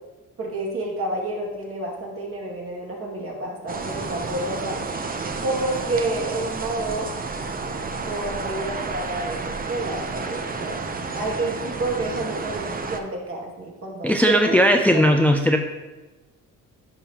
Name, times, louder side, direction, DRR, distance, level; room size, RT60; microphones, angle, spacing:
voice 1, 0.4-4.8 5.4-7.1 8.1-14.6 14.9-15.1, right 2 dB, 50° right, -2 dB, 2.3 m, -29 dB
sound 1, 3.7-13.0, right 4 dB, 30° right, 0.7 m, -31 dB
voice 2, 14.0-15.6, equal, 5° left, 4 dB, 0.4 m, -17 dB
10.5 x 5.5 x 2.9 m, 1.1 s
cardioid pair, 90°, 30 cm